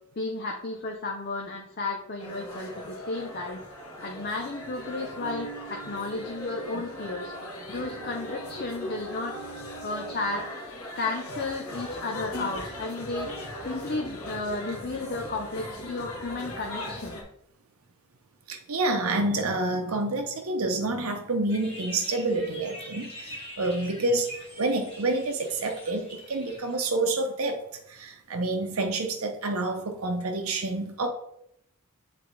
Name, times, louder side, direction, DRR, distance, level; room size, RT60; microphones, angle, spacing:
voice 1, 0.2-3.6 4.0-7.3 7.7-9.3 9.8-10.4 11.0-13.3 13.6-17.2, left 3 dB, 45° left, 1 dB, 0.7 m, -33 dB
sound 1, 2.2-17.2, equal, 90° left, 1.5 m, -38 dB
voice 2, 18.5-27.6 27.9-31.1, right 2 dB, 80° right, 4 dB, 0.8 m, -28 dB
sound 2, 21.5-26.9, left 1 dB, 30° left, 1.3 m, -44 dB
7.4 x 4.2 x 3.3 m, 0.76 s
head